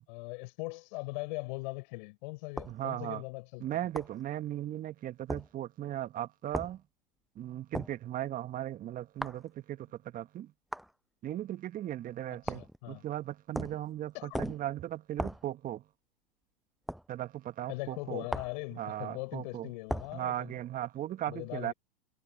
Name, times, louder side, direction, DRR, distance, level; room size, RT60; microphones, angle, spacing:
voice 1, 0.1-3.8 12.4-13.0 14.1-14.4 17.7-20.5 21.3-21.7, left 25 dB, 55° left, 5.7 m, -40 dB
sound 1, 2.6-2.8 4.0-4.2 5.3-5.5 6.5-6.8 7.7-8.0 9.2-9.4 10.7-10.9 12.5-12.8 13.5-13.8 14.3-14.7 15.2-15.5 16.9-17.1 18.3-18.6 19.9-20.2, equal, ahead, 0.4 m, -36 dB
voice 2, 2.7-3.2 3.6-6.8 7.3-10.5 11.2-15.8 17.1-18.2 18.7-19.7 20.1-21.7, right 12 dB, 30° right, 1.5 m, -37 dB
hypercardioid pair, 105°, 29 cm